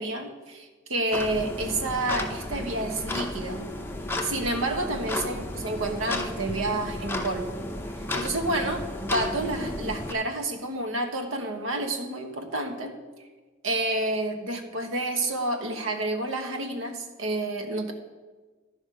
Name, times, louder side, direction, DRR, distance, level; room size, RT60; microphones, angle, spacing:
voice 1, 0.0-3.7 4.2-7.6 7.9-12.9 13.6-17.9, right 2 dB, 80° right, 4 dB, 1.2 m, -29 dB
sound 1, 1.1-10.1, left 1 dB, 10° left, 0.6 m, -33 dB
12.5 x 5.2 x 5.0 m, 1.3 s
head